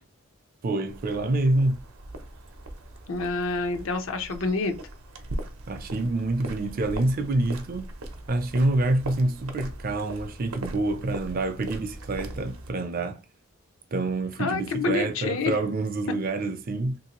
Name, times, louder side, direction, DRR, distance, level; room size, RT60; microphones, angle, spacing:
voice 1, 0.6-1.8 5.7-7.9 8.3-13.2 13.9-17.0, right 2 dB, 45° right, 0.4 m, -27 dB
sound 1, 0.9-12.7, right 1 dB, 85° right, 0.6 m, -40 dB
voice 2, 3.1-4.8 14.4-15.6, left 3 dB, 70° left, 0.6 m, -27 dB
3.0 x 2.6 x 2.9 m
head